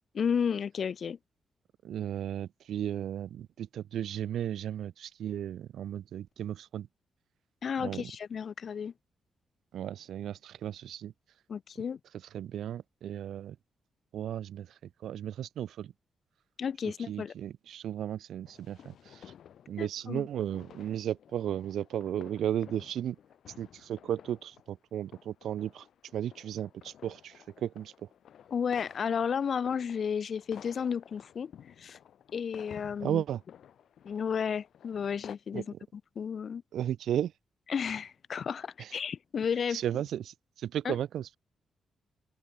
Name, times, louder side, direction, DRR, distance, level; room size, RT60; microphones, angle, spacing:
voice 1, 0.2-1.2 7.6-8.9 11.5-12.0 16.6-17.3 19.8-20.3 28.5-31.5 31.8-32.0 32.3-33.2 34.0-35.6 36.2-36.6 37.7-39.8 40.8-40.9, left 7 dB, 45° left, 0.7 m, -32 dB
voice 2, 1.8-6.9 7.8-8.1 9.7-11.1 12.3-13.6 14.1-15.9 17.1-19.3 19.7-23.2 23.6-25.9 26.1-28.1 33.0-33.4 35.5-35.8 36.7-37.3 38.8-39.0 39.7-41.4, right 10 dB, 85° right, 0.7 m, -35 dB
sound 1, 18.5-35.4, left 9 dB, 65° left, 1.8 m, -54 dB
wide cardioid pair, 175°, 0 cm